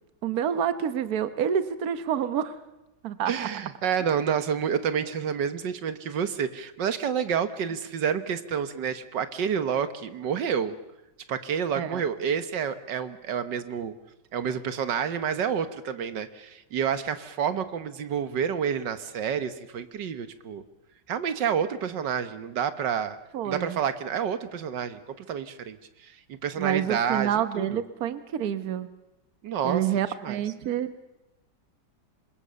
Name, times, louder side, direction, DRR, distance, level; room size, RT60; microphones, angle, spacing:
voice 1, 0.2-2.5 3.0-3.5 11.8-12.0 23.3-23.8 26.6-28.9 29.6-30.9, right 9 dB, 60° right, 12 dB, 1.5 m, -28 dB
voice 2, 3.3-10.8 11.3-13.9 14.3-20.6 21.1-23.2 23.5-26.2 26.4-27.8 29.4-29.8 30.2-30.4, right 7 dB, 85° right, 11 dB, 1.9 m, -29 dB
27.0 x 22.0 x 6.9 m, 0.97 s
omnidirectional pair, 1.9 m